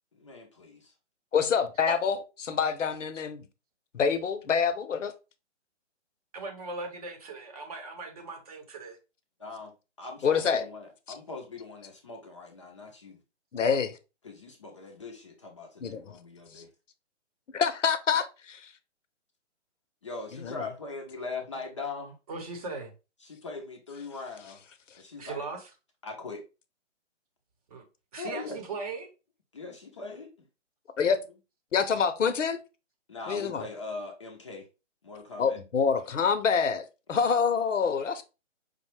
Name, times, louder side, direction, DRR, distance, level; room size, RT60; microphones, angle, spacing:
voice 1, 0.1-0.9 9.4-13.2 14.2-16.7 20.0-22.2 23.2-24.6 25.0-25.5 26.0-26.4 28.2-28.6 29.5-30.3 33.1-34.7 35.0-35.6 37.1-37.3, left 3 dB, 25° left, 0.5 m, -41 dB
voice 2, 1.3-3.5 3.9-5.1 10.2-10.6 13.5-14.0 15.8-16.2 17.5-18.7 20.4-20.5 31.0-31.2 31.7-32.6 33.3-33.6 35.4-38.2, left 6 dB, 80° left, 0.7 m, -26 dB
voice 3, 6.3-9.0 22.3-22.9 25.2-25.7 27.7-27.8 28.1-29.1, right 3 dB, 30° right, 0.8 m, -38 dB
5.0 x 2.1 x 3.1 m
hypercardioid pair, 145°, 37 cm